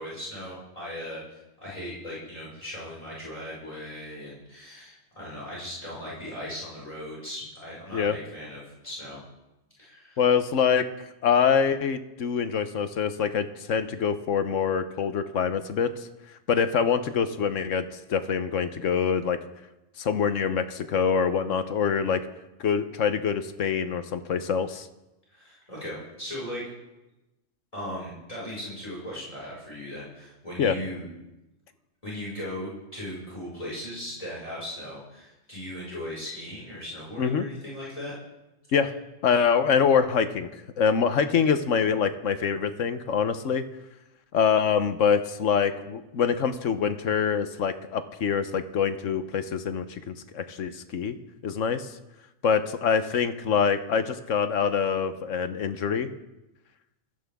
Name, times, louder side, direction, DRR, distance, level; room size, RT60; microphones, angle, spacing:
voice 1, 0.0-9.2 9.8-10.2 25.3-26.6 27.7-31.0 32.0-38.1, left 1 dB, 25° left, -6 dB, 5.3 m, -38 dB
voice 2, 10.2-10.9 11.2-15.9 16.5-19.4 20.0-22.2 22.6-24.9 30.6-30.8 37.2-37.5 38.7-38.9 39.2-40.5 40.8-43.6 44.3-51.2 51.4-51.9 52.4-56.1, left 6 dB, 75° left, 10 dB, 1.2 m, -25 dB
21.5 x 15.5 x 3.6 m, 0.98 s
omnidirectional pair, 1.3 m